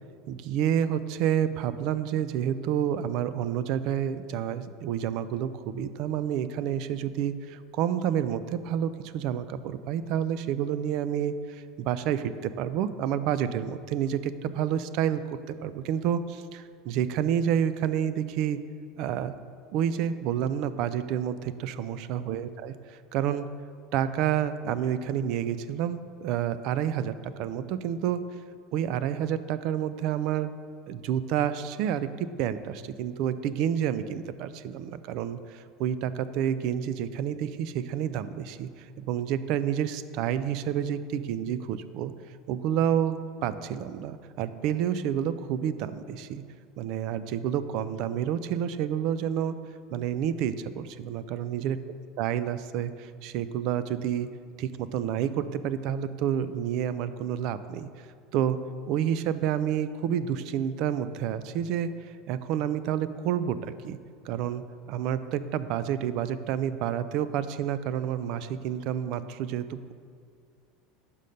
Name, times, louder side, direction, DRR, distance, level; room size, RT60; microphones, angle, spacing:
voice 1, 0.3-15.2 15.5-18.6 19.0-19.4 19.7-22.7 23.1-23.5 23.9-28.2 28.7-30.5 30.9-42.1 42.5-46.4 46.8-49.6 49.9-51.8 52.2-54.3 54.6-57.9 58.3-58.6 58.9-64.0 64.3-69.9, right 9 dB, 50° right, 13 dB, 0.3 m, -29 dB
5.5 x 5.2 x 6.4 m, 2.2 s
cardioid pair, 165°, 0 cm